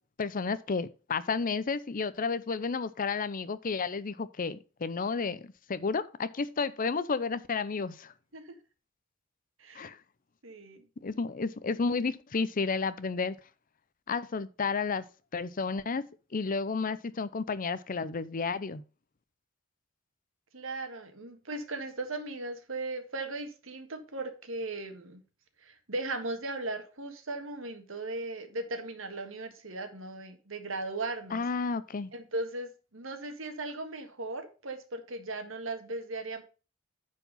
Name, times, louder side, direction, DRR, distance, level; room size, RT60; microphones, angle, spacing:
voice 1, 0.2-5.4 5.7-8.1 9.7-10.0 11.0-13.4 14.1-15.0 15.3-18.8 31.3-32.1, left 4 dB, 45° left, 0.6 m, -32 dB
voice 2, 10.4-10.8 20.5-25.2 25.6-31.4 32.1-36.4, right 2 dB, 75° right, 1.7 m, -37 dB
9.6 x 4.7 x 5.3 m
head